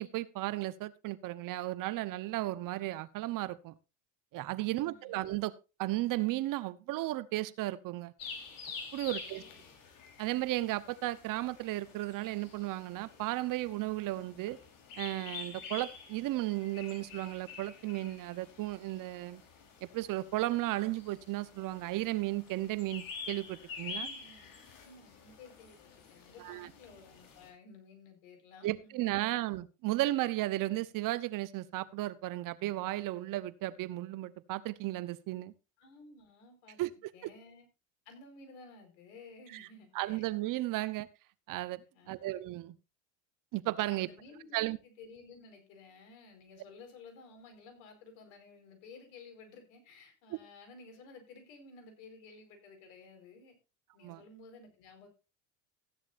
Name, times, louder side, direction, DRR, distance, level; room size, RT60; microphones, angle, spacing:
voice 1, 0.0-3.7 4.3-5.5 5.8-8.1 8.9-9.4 10.2-14.6 15.0-19.4 19.8-24.1 26.4-26.7 28.6-35.5 36.8-37.3 39.5-39.7 39.9-41.1 41.5-41.8 42.1-42.8 43.5-44.1 44.5-44.8 50.3-50.4 54.0-54.2, right 17 dB, 55° right, 16 dB, 1.0 m, -34 dB
voice 2, 4.8-5.3 9.2-9.8 23.9-24.5 24.8-29.5 35.8-36.8 37.1-37.7 38.0-40.3 40.8-40.9 41.9-42.3 43.8-53.5 53.9-55.1, left 3 dB, 75° left, 5 dB, 4.8 m, -54 dB
sound 1, 8.2-27.5, left 5 dB, 55° left, 4.1 m, -48 dB
15.0 x 11.0 x 2.6 m, 0.29 s
supercardioid pair, 90°, 39 cm